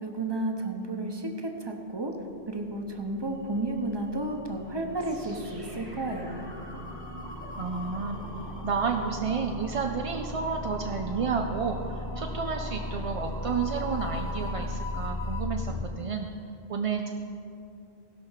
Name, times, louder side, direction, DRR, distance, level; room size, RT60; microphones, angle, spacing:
voice 1, 0.0-2.1 2.5-6.5, right 2 dB, 25° right, 3 dB, 0.9 m, -32 dB
sound 1, 2.5-15.8, left 1 dB, 25° left, 0.7 m, -37 dB
sound 2, 3.4-4.2 4.5-4.7 5.9-15.5, left 4 dB, 50° left, 0.9 m, -45 dB
sound 3, 5.0-14.8, right 1 dB, 80° right, 3.1 m, -45 dB
voice 2, 7.6-8.2 8.6-16.3 16.7-17.1, right 5 dB, 45° right, 3 dB, 0.4 m, -31 dB
17.0 x 5.8 x 5.7 m, 2.6 s
omnidirectional pair, 1.1 m